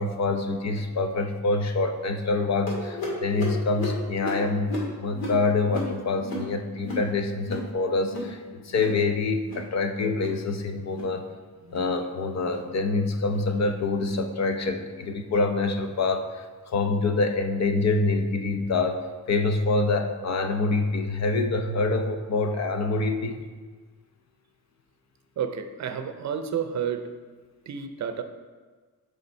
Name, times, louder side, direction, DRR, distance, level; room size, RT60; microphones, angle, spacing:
voice 1, 0.0-11.3 11.7-23.4, left 3 dB, 50° left, 6 dB, 0.7 m, -26 dB
sound 1, 2.7-7.7 8.0-8.4 8.6-9.0 9.3-9.7 10.1-10.4 10.8-11.2 11.6-11.9 12.4-12.7 13.2-13.5 14.1-14.3 15.0-15.1 15.8-15.9, left 2 dB, 80° left, 2.1 m, -35 dB
voice 2, 25.4-27.1 27.7-28.2, right 7 dB, 50° right, 8 dB, 0.6 m, -30 dB
6.7 x 5.0 x 4.3 m, 1.5 s
cardioid pair, 125°, 35 cm